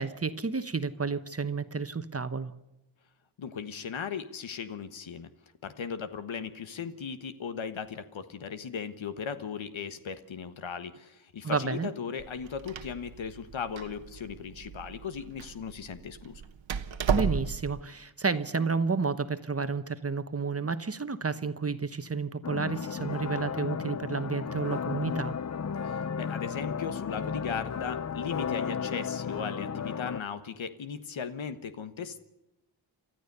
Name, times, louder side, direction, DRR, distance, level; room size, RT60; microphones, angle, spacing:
voice 1, 0.0-2.5 11.4-11.9 17.1-25.3, right 4 dB, 30° right, 12 dB, 1.1 m, -31 dB
voice 2, 3.4-5.3 5.6-16.4 25.8-32.2, left 6 dB, 80° left, 11 dB, 1.4 m, -37 dB
Door, 12.2-17.8, right 6 dB, 75° right, 1.3 m, -34 dB
sound 1, 22.4-30.2, left 6 dB, 35° left, 0.6 m, -34 dB
29.5 x 13.5 x 6.8 m, 0.95 s
wide cardioid pair, 105°, 46 cm